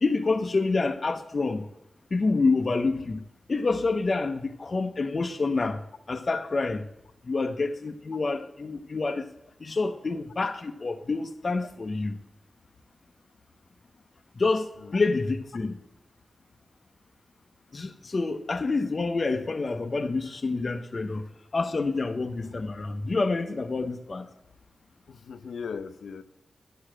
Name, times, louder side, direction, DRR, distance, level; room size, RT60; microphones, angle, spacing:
voice 1, 0.0-1.7 2.1-5.8 6.1-6.8 7.2-9.3 9.6-12.2 14.4-15.7 17.7-21.2 21.5-24.3, left 3 dB, 45° left, 0.7 m, -27 dB
voice 2, 25.1-26.2, left 5 dB, 85° left, 0.6 m, -38 dB
10.0 x 4.8 x 7.4 m
wide cardioid pair, 80°, 0 cm